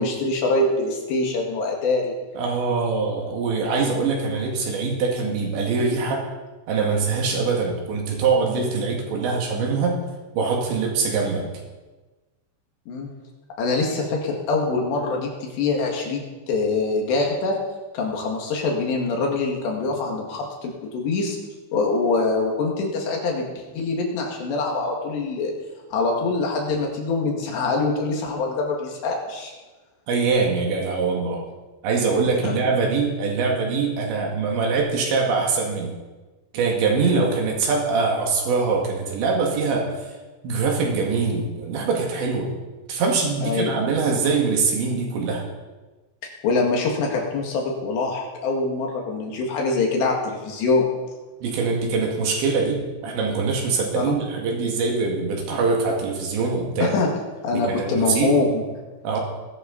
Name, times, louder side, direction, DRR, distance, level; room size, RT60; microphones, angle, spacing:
voice 1, 0.0-2.1 12.9-13.1 13.6-17.6 17.9-21.4 21.7-23.5 23.7-25.5 25.9-29.5 32.4-32.5 37.0-37.1 43.4-43.7 46.4-50.8 54.0-54.2 56.8-57.1 57.4-58.6, left 3 dB, 70° left, 0 dB, 4.1 m, -24 dB
voice 2, 2.4-6.2 6.7-10.0 10.4-11.4 30.1-31.4 31.8-35.9 36.5-39.9 40.4-42.5 42.9-45.4 51.4-56.9 57.5-58.4 59.0-59.2, right 4 dB, 75° right, 0 dB, 4.3 m, -23 dB
19.5 x 13.0 x 4.2 m, 1.2 s
omnidirectional pair, 5.3 m